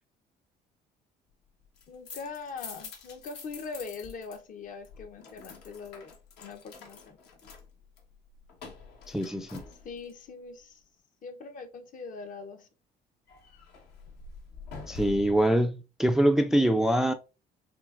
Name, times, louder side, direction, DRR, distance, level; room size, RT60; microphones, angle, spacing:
sound 1, 1.6-4.4 4.6-10.2 13.3-15.5, left 5 dB, 75° left, 1.3 m, -46 dB
voice 1, 1.9-6.1 6.4-7.2 9.8-10.8 11.2-12.7, left 4 dB, 50° left, 0.8 m, -42 dB
voice 2, 9.1-9.6 14.9-17.1, right 1 dB, 5° right, 0.3 m, -24 dB
6.1 x 3.1 x 2.5 m
cardioid pair, 110°, 17 cm